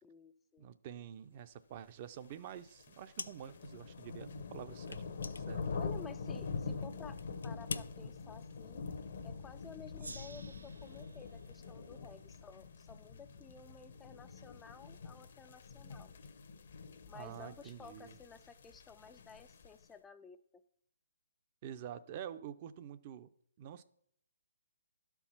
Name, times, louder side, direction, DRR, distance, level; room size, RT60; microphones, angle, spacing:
voice 1, 0.0-0.7 5.7-8.8 9.2-16.1 17.1-20.4, left 6 dB, 10° left, 9 dB, 0.4 m, -54 dB
voice 2, 0.6-5.8 6.7-6.8 17.1-18.2 21.6-23.3 23.6-23.8, right 9 dB, 35° right, 13 dB, 0.6 m, -48 dB
sound 1, 2.3-19.9, left 4 dB, 60° left, 0.9 m, -45 dB
sound 2, 3.2-3.7 4.0-4.1 4.9-6.3 6.6-6.8 7.2-7.9, left 4 dB, 85° left, 0.4 m, -45 dB
Gong, 10.0-13.1, right 3 dB, 90° right, 0.4 m, -55 dB
11.5 x 4.6 x 5.7 m, 0.69 s
hypercardioid pair, 150°, 0 cm